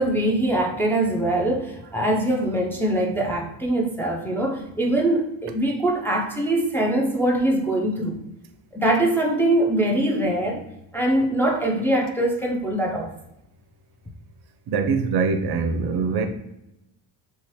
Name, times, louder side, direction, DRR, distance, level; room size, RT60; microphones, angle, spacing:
voice 1, 0.0-8.2 8.7-10.7 10.9-13.1, right 1 dB, 5° left, -1 dB, 0.3 m, -23 dB
voice 2, 14.7-16.3, right 5 dB, 55° right, 6 dB, 0.5 m, -23 dB
2.8 x 2.3 x 3.1 m, 0.88 s
cardioid pair, 90°, 49 cm